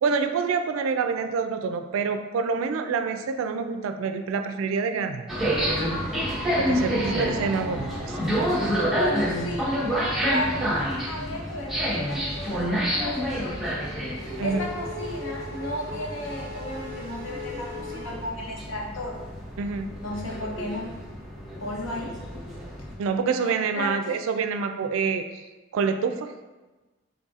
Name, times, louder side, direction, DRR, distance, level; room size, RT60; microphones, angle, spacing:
voice 1, 0.0-5.2 6.6-8.2 14.4-14.7 19.6-19.9 23.0-25.3 25.7-26.3, right 5 dB, 80° right, 8 dB, 0.3 m, -27 dB
sound 1, 5.3-22.9, equal, ahead, 0.7 m, -29 dB
voice 2, 8.9-9.7 10.2-14.1 14.4-19.2 20.0-20.9 21.6-22.1 23.7-24.3, left 1 dB, 80° left, -1 dB, 0.8 m, -34 dB
Race car auto racing / Accelerating revving vroom, 13.6-18.9, left 2 dB, 50° left, 1.1 m, -39 dB
4.0 x 3.5 x 2.4 m, 1.2 s
head